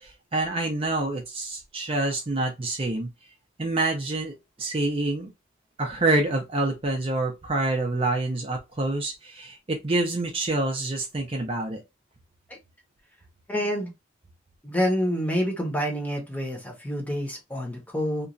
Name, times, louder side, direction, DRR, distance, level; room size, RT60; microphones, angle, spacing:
voice 1, 0.0-3.1 3.6-5.3 5.8-11.8, right 2 dB, 30° right, 0.5 m, -27 dB
voice 2, 13.5-13.9 14.6-18.3, equal, 10° left, 0.8 m, -27 dB
2.9 x 2.4 x 2.5 m
head